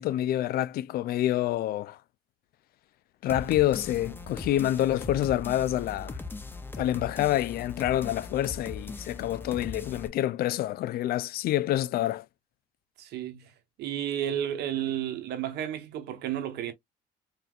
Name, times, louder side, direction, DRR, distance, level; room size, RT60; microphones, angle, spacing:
voice 1, 0.0-2.0 3.2-6.2 6.8-12.3, left 13 dB, 65° left, 0.4 m, -27 dB
sound 1, 3.3-10.1, left 3 dB, 10° left, 0.7 m, -40 dB
voice 2, 13.0-13.5 13.8-16.7, right 10 dB, 80° right, 1.2 m, -32 dB
4.4 x 3.3 x 2.4 m
cardioid pair, 110°, 17 cm